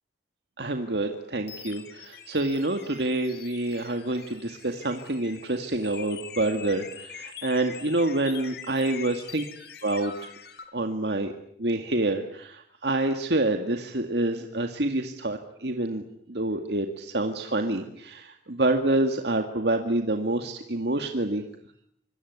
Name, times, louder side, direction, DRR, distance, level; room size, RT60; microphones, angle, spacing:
sound 1, 0.6-10.7, left 8 dB, 65° left, 3.8 m, -44 dB
voice 1, 0.6-9.4 9.8-10.3 10.7-11.3 11.6-16.0 16.3-21.4, right 2 dB, 65° right, 5 dB, 2.0 m, -27 dB
26.5 x 22.5 x 9.5 m, 0.70 s
head